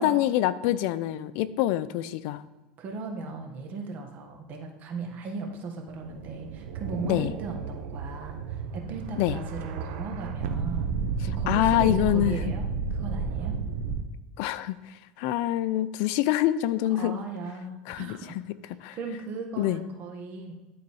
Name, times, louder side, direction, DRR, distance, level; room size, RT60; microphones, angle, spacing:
voice 1, 0.0-2.4 7.0-7.3 9.2-9.4 11.5-12.4 14.4-17.2 17.9-18.4 18.8-19.0 19.6-19.8, left 13 dB, 65° left, 16 dB, 0.5 m, -26 dB
voice 2, 2.8-13.6 17.0-18.3 18.9-20.5, right 3 dB, 45° right, 3 dB, 1.5 m, -37 dB
sound 1, 5.9-14.0, right 5 dB, 70° right, 1.0 m, -32 dB
11.5 x 3.9 x 4.7 m, 1.2 s
supercardioid pair, 125°, 4 cm